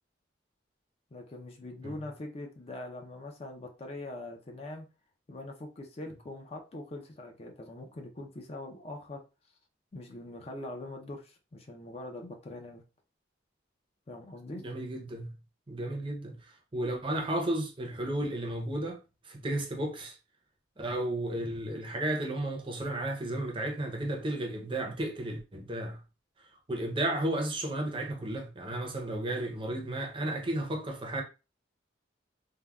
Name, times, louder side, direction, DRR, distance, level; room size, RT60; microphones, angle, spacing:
voice 1, 1.1-4.9 5.3-9.2 9.9-12.8 14.1-14.6, left 1 dB, 30° left, 0.4 m, -42 dB
voice 2, 14.6-15.4 15.7-20.2 20.8-26.0 26.4-31.2, right 1 dB, 25° right, 0.5 m, -33 dB
3.4 x 2.1 x 2.2 m
head